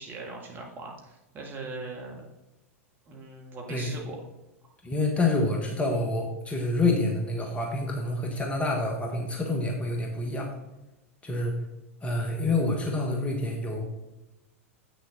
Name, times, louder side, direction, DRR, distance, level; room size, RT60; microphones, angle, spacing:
voice 1, 0.0-2.3 3.1-4.2, right 3 dB, 25° right, 0 dB, 1.8 m, -40 dB
voice 2, 4.8-10.5 11.2-11.5 12.0-13.8, left 2 dB, 15° left, 1 dB, 1.3 m, -27 dB
8.2 x 6.4 x 3.9 m, 0.99 s
figure-of-eight pair, 95°, 8 cm